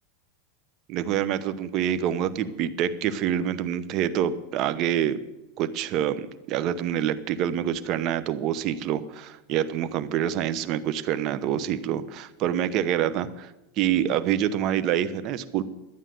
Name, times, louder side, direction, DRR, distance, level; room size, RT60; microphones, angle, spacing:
voice 1, 0.9-5.2 5.6-13.5 13.8-15.6, right 10 dB, 45° right, 12 dB, 0.8 m, -26 dB
11.5 x 9.0 x 7.7 m, 0.96 s
supercardioid pair, 135°, 0 cm